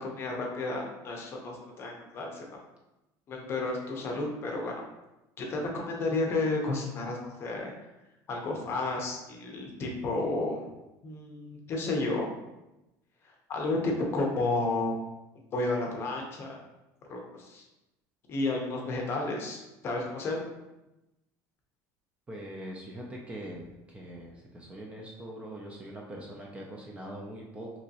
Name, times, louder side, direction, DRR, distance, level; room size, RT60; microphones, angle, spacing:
voice 1, 0.0-2.5 3.3-4.7 5.4-7.7 8.3-10.7 11.0-12.3 13.5-14.9 15.5-16.6 17.1-17.6 18.3-19.6 19.8-20.4, left 2 dB, 30° left, 0 dB, 0.6 m, -32 dB
voice 2, 22.3-27.8, right 1 dB, 15° right, -1 dB, 0.3 m, -42 dB
3.4 x 3.0 x 2.8 m, 0.97 s
cardioid pair, 165°, 8 cm